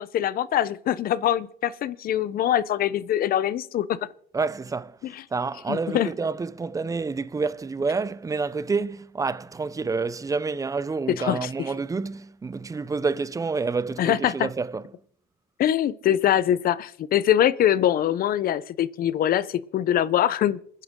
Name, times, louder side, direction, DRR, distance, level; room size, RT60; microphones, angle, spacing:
voice 1, 0.0-4.0 5.7-6.1 11.2-11.5 14.0-14.5 15.6-20.6, left 11 dB, 60° left, 0.9 m, -23 dB
voice 2, 4.3-5.0 5.3-14.9, right 4 dB, 20° right, 0.6 m, -28 dB
28.0 x 10.0 x 3.8 m
cardioid pair, 110°, 17 cm